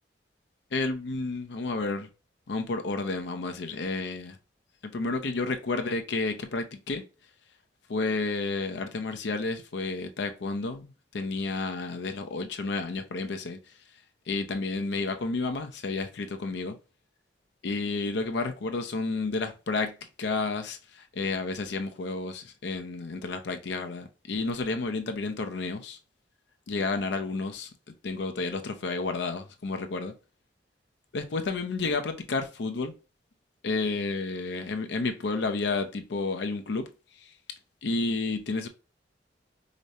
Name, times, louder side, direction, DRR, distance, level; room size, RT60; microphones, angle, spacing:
voice 1, 0.7-2.1 2.5-4.3 4.8-7.0 7.9-13.6 14.3-16.8 17.6-19.9 20.2-20.8 21.2-26.0 26.7-27.7 28.0-30.1 31.1-32.9 33.6-36.9 37.8-38.7, left 3 dB, 70° left, 0.5 m, -31 dB
5.0 x 2.1 x 2.6 m
head